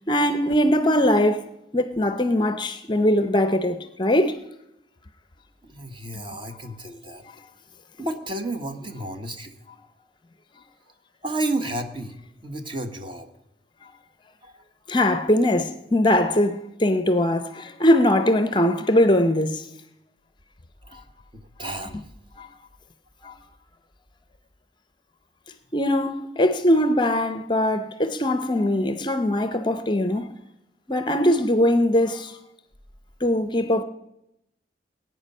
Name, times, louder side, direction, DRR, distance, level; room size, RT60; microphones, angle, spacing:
voice 1, 0.1-1.4 1.7-4.4 14.9-19.7 20.9-21.0 22.4-22.5 23.2-23.3 25.7-30.3 30.9-32.4 33.2-33.8, left 1 dB, 25° left, 0.6 m, -21 dB
voice 2, 5.6-7.2 8.0-9.5 11.2-12.2 12.4-13.3 14.4-14.6 20.9-21.0 21.3-22.0, right 1 dB, 25° right, 1.2 m, -31 dB
19.5 x 9.1 x 5.5 m
head